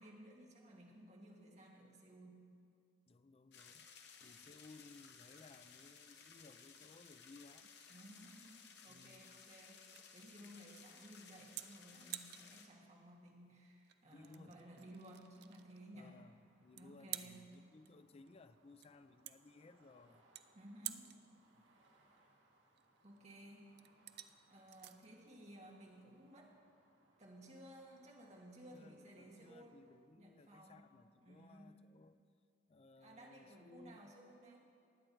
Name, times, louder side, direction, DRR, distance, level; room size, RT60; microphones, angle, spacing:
voice 1, 0.0-2.5 7.9-16.1 16.7-17.5 20.5-21.2 23.0-23.7 24.5-26.5 27.2-29.8 30.2-30.9 31.2-31.8 33.0-34.6, right 1 dB, 40° right, -2 dB, 1.8 m, -57 dB
voice 2, 3.1-3.9 4.2-7.7 8.9-9.4 14.1-14.6 15.9-20.2 21.5-21.7 28.7-32.2 32.7-34.1, left 3 dB, 30° left, 11 dB, 0.4 m, -61 dB
sound 1, 3.5-12.7, left 6 dB, 60° left, 1.1 m, -59 dB
sound 2, 7.7-26.5, right 13 dB, 60° right, 0.4 m, -54 dB
sound 3, 14.0-30.0, right 2 dB, 90° right, 1.7 m, -74 dB
19.5 x 7.8 x 4.6 m, 2.4 s
head